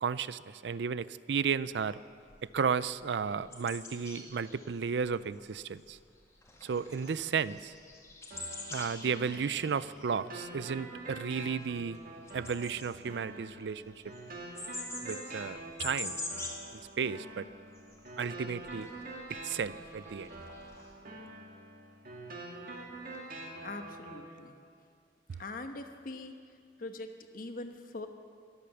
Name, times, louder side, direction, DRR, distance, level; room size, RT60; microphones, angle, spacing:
voice 1, 0.0-2.0 2.5-6.0 6.6-7.7 8.7-12.0 12.3-13.9 15.0-16.2 17.0-17.5 18.2-18.9 19.3-20.3, right 6 dB, 75° right, 17 dB, 0.4 m, -33 dB
sound 1, 1.7-1.9 2.3-2.5 2.8-6.2 6.4-16.7 17.0-17.2 17.4-20.9, left 2 dB, 15° left, 2.0 m, -46 dB
sound 2, 8.3-24.3, right 2 dB, 55° right, 2.2 m, -46 dB
voice 2, 23.6-24.6 25.4-26.3 26.8-28.1, left 2 dB, 55° left, 6 dB, 1.1 m, -42 dB
22.5 x 8.5 x 7.1 m, 2.2 s
head